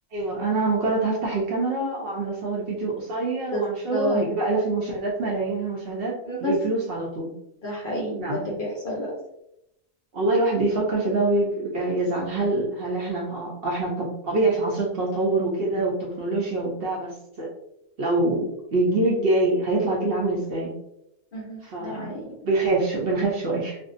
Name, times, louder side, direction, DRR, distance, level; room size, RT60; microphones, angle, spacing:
voice 1, 0.1-7.3 8.2-8.4 10.1-17.5 18.0-20.7 21.7-22.1 22.4-23.8, right 2 dB, 60° right, -3 dB, 0.7 m, -25 dB
voice 2, 3.9-4.2 6.2-6.6 7.6-9.1 21.3-22.4, equal, 55° left, -3 dB, 0.6 m, -29 dB
2.5 x 2.1 x 2.4 m, 0.82 s
omnidirectional pair, 1.4 m